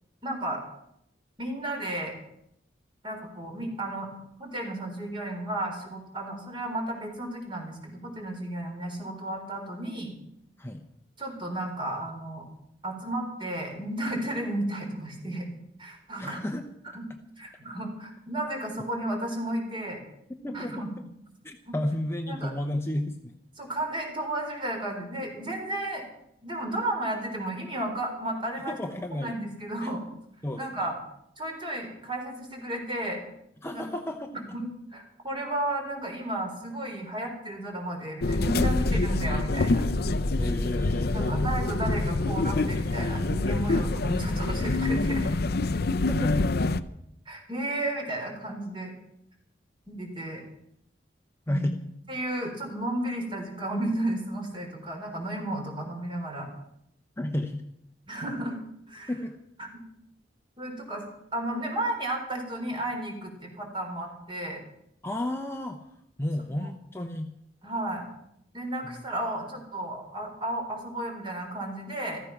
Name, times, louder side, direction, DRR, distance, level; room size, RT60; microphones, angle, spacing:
voice 1, 0.2-0.6 1.4-2.2 3.0-4.1 4.4-10.1 11.2-12.5 12.8-15.5 15.8-16.5 16.9-17.1 17.4-20.0 20.5-20.9 21.7-21.8 22.3-22.5 23.6-26.0 26.4-28.8 29.1-30.0 30.5-31.0 31.4-33.2 33.7-33.9 34.3-39.9 41.1-45.4 47.3-48.9 49.9-50.4 51.5-51.7 52.1-56.5 58.1-58.6 58.9-59.1 59.6-59.8 60.6-61.0 61.3-64.6 66.5-66.7 67.6-68.0 68.5-72.2, right 1 dB, 30° right, 2 dB, 4.2 m, -33 dB
voice 2, 16.2-16.6 20.4-20.8 21.4-23.3 28.7-29.4 29.8-29.9 30.4-30.6 33.6-34.3 40.4-41.5 44.0-44.1 46.1-46.4 51.5-51.7 57.2-57.6 59.1-59.4 65.0-65.8 66.2-67.3 68.8-68.9, left 1 dB, 15° left, 5 dB, 0.9 m, -32 dB
sound 1, 38.2-46.8, left 2 dB, 60° left, 0.6 m, -26 dB
15.0 x 14.5 x 5.9 m, 0.76 s
head